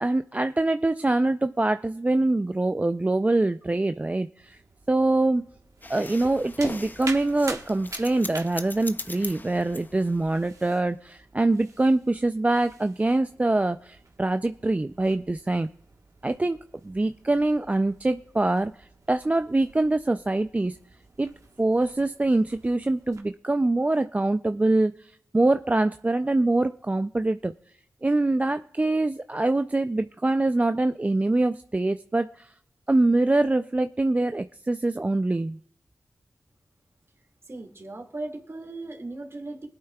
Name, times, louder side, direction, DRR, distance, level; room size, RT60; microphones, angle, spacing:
voice 1, 0.0-4.6 4.9-5.5 5.9-15.7 16.2-16.6 16.8-20.8 21.2-21.3 21.6-27.5 28.0-32.5 32.9-35.6, right 2 dB, 25° right, 9 dB, 0.4 m, -24 dB
sound 1, 4.4-23.2, right 3 dB, 65° right, 1.3 m, -47 dB
sound 2, 5.8-10.6, left 2 dB, 30° left, 0.5 m, -40 dB
voice 2, 37.4-39.7, right 2 dB, 45° right, 3 dB, 2.1 m, -37 dB
20.5 x 8.7 x 2.3 m, 0.68 s
cardioid pair, 40°, 6 cm